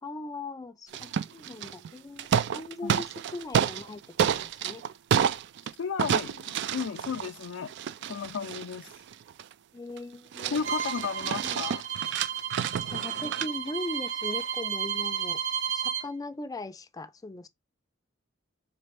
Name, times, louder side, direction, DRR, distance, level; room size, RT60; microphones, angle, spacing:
voice 1, 0.0-4.0 4.3-4.8 9.7-10.6 11.2-11.6 12.9-15.4 15.7-17.5, left 2 dB, 20° left, 0.4 m, -39 dB
sound 1, 0.9-1.9 2.2-3.9 4.2-5.7 6.0-9.5 10.0-10.1 10.3-13.5, right 8 dB, 60° right, 0.3 m, -29 dB
voice 2, 5.8-7.7 8.0-9.0 10.5-11.8, left 6 dB, 90° left, 0.4 m, -34 dB
Bowed string instrument, 10.6-16.1, right 8 dB, 80° right, 2.3 m, -32 dB
4.1 x 3.3 x 3.2 m
head